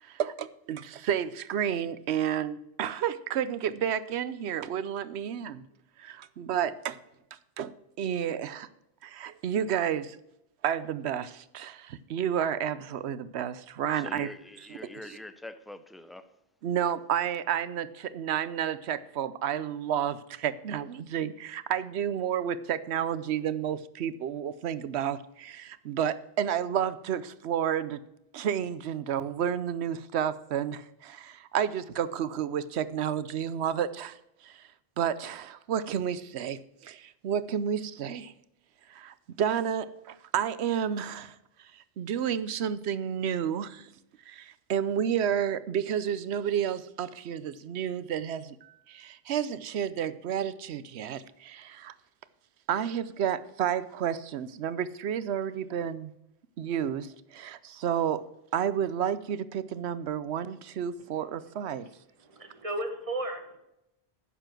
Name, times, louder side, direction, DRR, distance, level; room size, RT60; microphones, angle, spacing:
voice 1, 0.0-5.6 6.0-7.0 7.6-7.7 8.0-8.7 9.0-10.2 10.6-14.3 16.6-28.0 28.3-34.6 35.0-38.3 38.9-43.9 44.3-51.9 52.7-56.1 56.6-58.2 58.5-61.9, right 9 dB, 80° right, 0.9 m, -31 dB
voice 2, 13.9-16.4, left 1 dB, ahead, 0.4 m, -45 dB
voice 3, 62.2-63.6, right 1 dB, 30° right, 1.6 m, -35 dB
10.0 x 7.0 x 5.9 m
omnidirectional pair, 1.1 m